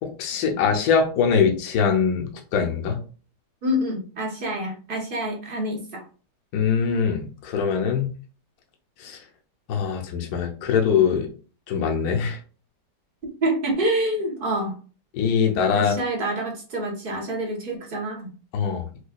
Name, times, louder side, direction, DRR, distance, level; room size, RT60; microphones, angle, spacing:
voice 1, 0.0-3.0 6.5-8.1 9.0-9.2 9.7-11.3 11.7-12.4 15.1-15.9 18.5-18.8, left 6 dB, 70° left, 2 dB, 1.1 m, -22 dB
voice 2, 3.6-6.0 13.2-14.8 15.7-18.3, right 1 dB, 45° right, 0 dB, 0.7 m, -27 dB
4.8 x 2.2 x 2.2 m, 0.38 s
omnidirectional pair, 1.8 m